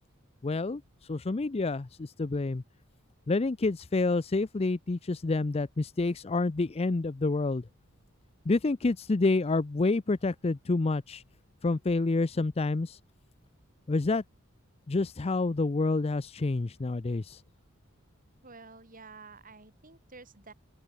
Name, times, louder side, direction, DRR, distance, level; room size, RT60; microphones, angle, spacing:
voice 1, 0.4-0.8 1.1-2.6 3.3-7.6 8.5-11.2 11.6-13.0 13.9-14.2 14.9-17.4, left 3 dB, 30° left, 0.5 m, -28 dB
voice 2, 18.4-20.5, right 4 dB, 40° right, 4.6 m, -50 dB
open air
head